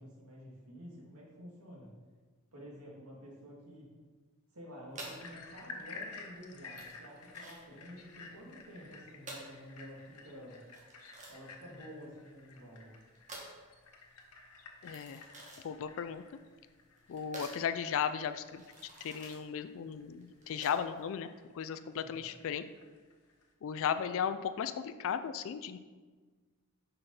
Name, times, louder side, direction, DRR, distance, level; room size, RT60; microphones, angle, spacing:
voice 1, 0.0-1.9 2.5-3.9 4.5-10.6 11.3-13.0 22.0-22.3, equal, 75° right, -3 dB, 2.2 m, -50 dB
sound 1, 4.9-21.0, right 2 dB, 35° right, 1.5 m, -51 dB
sound 2, 5.2-23.5, left 4 dB, 90° left, 1.0 m, -53 dB
voice 2, 14.8-15.2 15.6-16.2 17.1-18.6 19.0-21.3 21.5-22.7 23.6-25.8, left 7 dB, 65° left, 10 dB, 0.3 m, -35 dB
5.9 x 5.3 x 5.5 m, 1.4 s
head